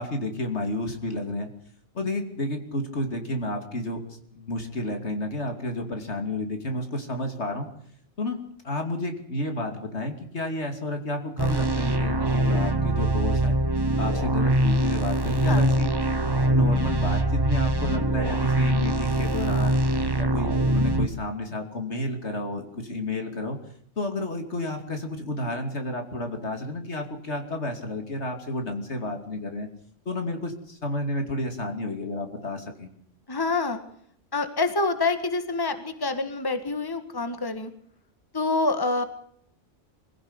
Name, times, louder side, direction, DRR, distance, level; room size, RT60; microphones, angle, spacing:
voice 1, 0.0-1.5 1.9-4.0 4.3-7.7 8.2-8.4 8.6-13.6 14.0-15.9 16.5-19.8 20.2-23.6 24.0-29.7 30.0-32.9, left 1 dB, 65° left, 5 dB, 3.1 m, -31 dB
sound 1, 11.4-21.1, right 1 dB, 20° right, 1.3 m, -23 dB
voice 2, 33.3-33.8 34.3-37.7 38.3-39.0, left 3 dB, 20° left, 9 dB, 1.7 m, -26 dB
24.0 x 16.5 x 8.2 m, 0.66 s
omnidirectional pair, 1.2 m